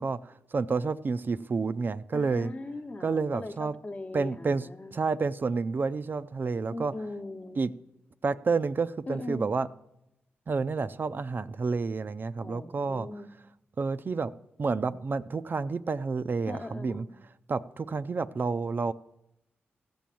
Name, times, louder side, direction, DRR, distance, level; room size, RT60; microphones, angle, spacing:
voice 1, 0.0-2.5 3.0-3.8 4.1-6.9 7.6-7.7 8.2-9.7 10.5-13.1 13.8-14.3 14.6-17.1 17.5-18.9, right 4 dB, 50° right, 12 dB, 0.5 m, -29 dB
voice 2, 2.1-4.9 6.7-7.6 9.1-9.5 12.4-13.3 16.5-17.0, left 2 dB, 35° left, 7 dB, 1.0 m, -39 dB
15.0 x 7.1 x 7.6 m, 0.87 s
cardioid pair, 55°, 4 cm